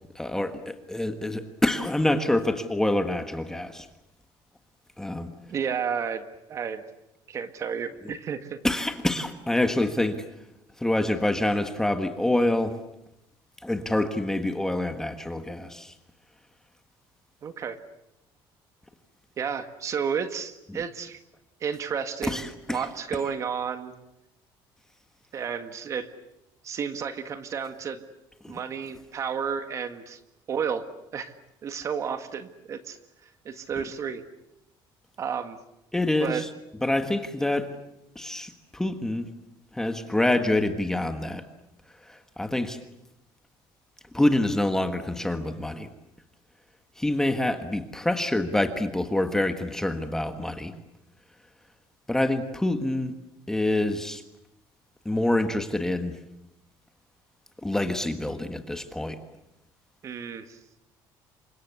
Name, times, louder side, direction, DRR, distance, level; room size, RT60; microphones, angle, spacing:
voice 1, 0.1-3.9 5.0-5.3 8.0-8.1 8.6-10.2 10.8-12.8 13.6-15.9 20.7-20.8 22.2-22.8 28.4-28.6 35.9-36.5 36.8-37.7 38.1-39.3 39.7-41.4 42.0-42.8 44.1-45.9 47.0-50.7 52.1-53.1 53.5-54.2 55.0-56.1 57.6-59.2, left 1 dB, 5° left, 8 dB, 1.5 m, -26 dB
voice 2, 5.5-6.8 7.3-8.6 17.4-17.8 19.4-21.2 21.6-23.9 25.3-26.1 26.6-28.0 28.5-30.2 30.5-30.8 31.1-31.3 31.6-33.0 33.4-34.2 35.2-35.6 36.2-36.5 60.0-60.6, right 7 dB, 35° right, 10 dB, 1.7 m, -31 dB
29.0 x 25.0 x 8.2 m, 0.86 s
cardioid pair, 170°, 9 cm